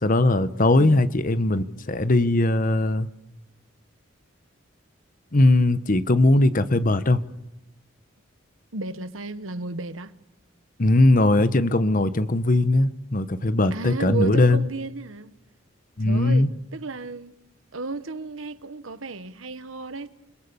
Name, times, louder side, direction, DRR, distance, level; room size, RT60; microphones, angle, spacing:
voice 1, 0.0-3.1 5.3-7.2 10.8-14.6 16.0-16.5, left 2 dB, 45° left, 1.0 m, -20 dB
voice 2, 8.7-10.2 13.7-15.3 16.0-17.3 17.7-20.1, right 3 dB, 85° right, 1.2 m, -33 dB
28.0 x 22.5 x 7.0 m
head